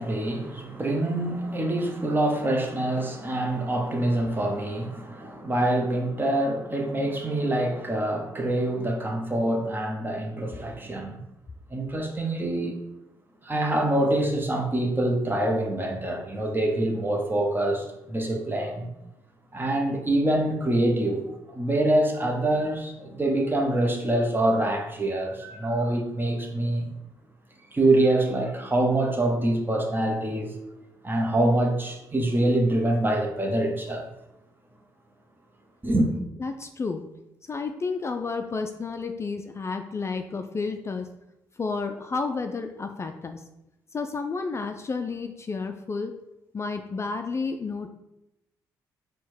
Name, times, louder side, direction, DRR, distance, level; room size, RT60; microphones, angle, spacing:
voice 1, 0.0-11.2 11.7-12.8 13.4-18.9 19.5-26.9 27.7-30.6 31.0-34.1 35.8-36.1, right 1 dB, 25° right, 0.9 m, -25 dB
voice 2, 36.4-37.0 37.5-41.1 41.6-43.4 43.9-46.1 46.5-47.9, left 4 dB, 30° left, 0.4 m, -31 dB
4.4 x 2.2 x 4.3 m
supercardioid pair, 55°, 9 cm